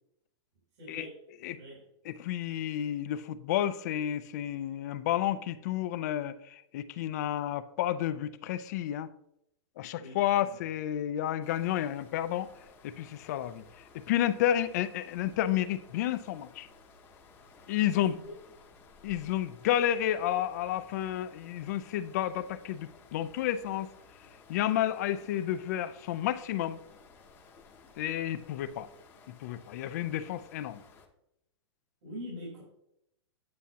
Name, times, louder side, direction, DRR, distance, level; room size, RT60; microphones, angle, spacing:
voice 1, 0.7-1.8 9.9-10.6 18.1-18.3 32.0-32.6, equal, 70° right, -3 dB, 3.7 m, -44 dB
voice 2, 2.1-9.1 9.8-12.5 12.8-13.6 13.9-16.7 17.7-18.2 19.0-23.9 24.5-26.8 28.0-28.9 29.3-30.8, left 11 dB, 35° left, 14 dB, 0.4 m, -31 dB
sound 1, 11.4-31.1, left 4 dB, 15° left, 0.8 m, -57 dB
9.4 x 8.1 x 2.8 m, 0.80 s
supercardioid pair, 170°, 15 cm